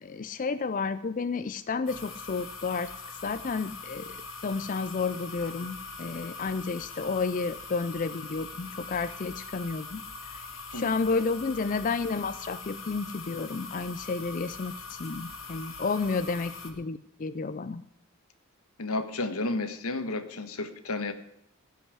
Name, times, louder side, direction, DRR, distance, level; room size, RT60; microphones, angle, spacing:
voice 1, 0.0-2.9 3.2-4.2 4.4-10.0 10.3-17.8, left 4 dB, 35° left, 12 dB, 0.4 m, -31 dB
sound 1, 1.9-16.7, left 4 dB, 60° left, 1.9 m, -42 dB
voice 2, 10.7-11.0 18.8-21.1, left 2 dB, 85° left, 9 dB, 1.5 m, -32 dB
16.0 x 5.7 x 9.8 m, 0.76 s
head